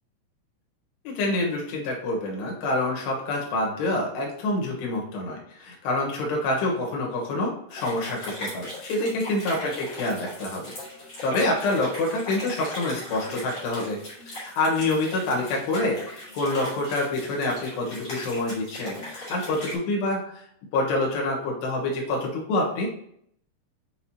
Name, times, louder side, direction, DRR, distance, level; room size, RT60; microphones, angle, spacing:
voice 1, 1.0-10.7 11.0-14.0 14.3-20.3 20.7-22.9, left 2 dB, 75° left, -1 dB, 3.3 m, -27 dB
sound 1, 7.7-19.7, left 1 dB, 25° left, 2.6 m, -38 dB
6.5 x 6.3 x 2.8 m, 0.70 s
omnidirectional pair, 5.0 m